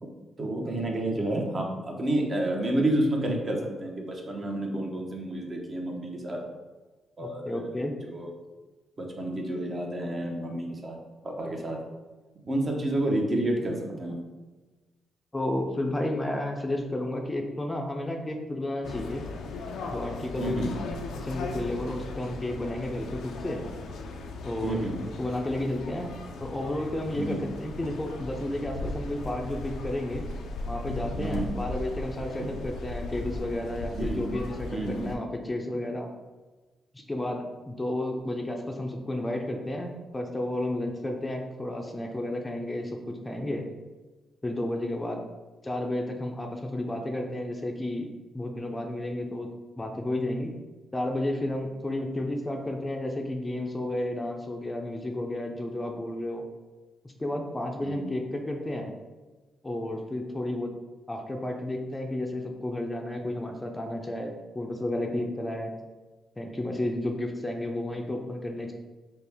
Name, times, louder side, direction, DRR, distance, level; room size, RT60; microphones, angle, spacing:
voice 1, 0.4-6.4 7.2-7.7 8.0-8.3 9.0-11.0 11.2-11.8 12.5-14.2 20.4-20.7 24.6-25.0 27.1-27.4 31.2-31.5 32.4-32.5 33.9-34.2 34.7-35.0 57.8-58.1, right 1 dB, 40° right, 1 dB, 0.8 m, -30 dB
voice 2, 7.2-7.9 15.3-19.2 19.9-20.6 21.2-23.6 24.4-24.9 25.2-26.1 26.4-30.3 30.7-36.1 36.9-43.6 44.4-45.2 45.6-48.1 48.3-49.5 49.8-50.5 50.9-56.4 57.2-58.9 59.6-60.7 61.1-65.7 66.4-68.7, left 1 dB, 20° left, 2 dB, 0.5 m, -32 dB
sound 1, 18.8-35.2, left 2 dB, 75° left, 0.4 m, -37 dB
4.2 x 2.1 x 3.4 m, 1.2 s
cardioid pair, 70°, 0 cm